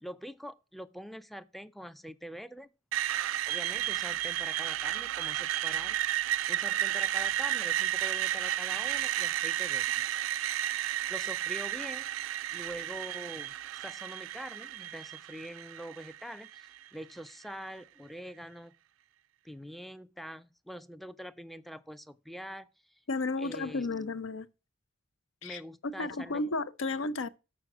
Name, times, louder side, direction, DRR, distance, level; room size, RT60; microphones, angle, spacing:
voice 1, 0.0-2.7 3.5-6.0 6.5-10.0 11.1-12.1 12.5-18.7 19.4-23.0 23.4-23.9 25.4-26.4, equal, ahead, 0.4 m, -44 dB
Screech, 2.9-16.9, right 12 dB, 90° right, 0.3 m, -32 dB
voice 2, 23.1-24.5 25.4-25.6 26.0-27.3, left 3 dB, 85° left, 0.6 m, -33 dB
6.8 x 6.3 x 5.9 m
head